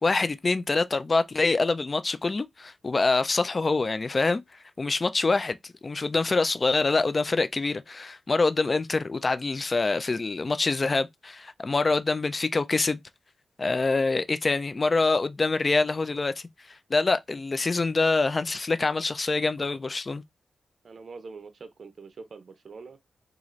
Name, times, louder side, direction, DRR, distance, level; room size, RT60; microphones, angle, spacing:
voice 1, 0.0-4.4 4.8-5.6 5.8-13.0 13.6-16.4 16.9-20.2, left 3 dB, 35° left, 0.3 m, -25 dB
voice 2, 20.8-23.0, right 4 dB, 55° right, 0.5 m, -44 dB
3.8 x 2.4 x 3.0 m
wide cardioid pair, 95°, 0 cm